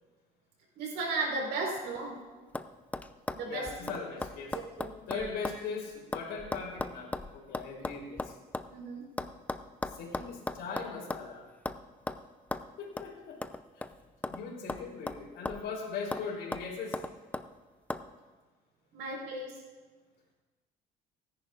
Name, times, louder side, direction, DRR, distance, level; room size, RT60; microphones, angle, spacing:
voice 1, 0.7-2.2 3.3-3.9 4.5-5.3 8.7-9.0 18.9-19.6, right 3 dB, 90° right, -1 dB, 4.2 m, -36 dB
sound 1, 1.8-2.2 2.5-2.7 2.9-5.6 5.9-8.7 9.2-11.3 11.7-11.8 12.1-12.2 12.5-12.7 13.0-13.1 13.4-14.4 14.7-15.7 16.1-16.3 16.5-17.5 17.9-18.0, left 2 dB, 10° left, 0.4 m, -37 dB
voice 2, 3.4-4.6 5.1-8.4 9.9-11.5 12.8-13.4 14.3-17.0, left 5 dB, 80° left, 0 dB, 3.4 m, -39 dB
27.0 x 10.5 x 2.4 m, 1.3 s
cardioid pair, 110°, 17 cm